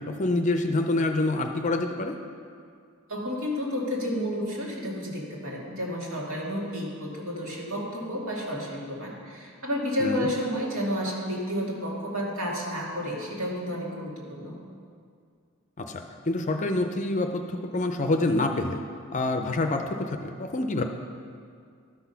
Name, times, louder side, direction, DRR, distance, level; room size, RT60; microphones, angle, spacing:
voice 1, 0.1-2.1 10.0-10.3 15.8-18.8 19.1-20.8, left 2 dB, 35° left, 5 dB, 0.5 m, -27 dB
voice 2, 3.1-14.6, equal, 70° right, -4 dB, 2.2 m, -31 dB
12.0 x 6.1 x 5.7 m, 2.2 s
head